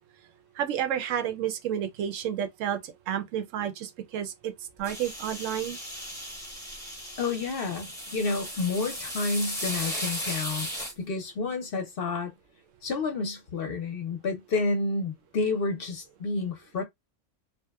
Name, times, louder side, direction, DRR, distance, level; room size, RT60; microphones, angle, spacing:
voice 1, 0.6-4.5 4.8-5.8, right 9 dB, 85° right, 0.9 m, -31 dB
sound 1, 4.8-10.9, equal, 5° left, 0.8 m, -36 dB
voice 2, 7.2-10.7 11.0-12.3 12.8-16.8, left 3 dB, 55° left, 0.7 m, -30 dB
2.8 x 2.1 x 2.2 m
omnidirectional pair, 1.3 m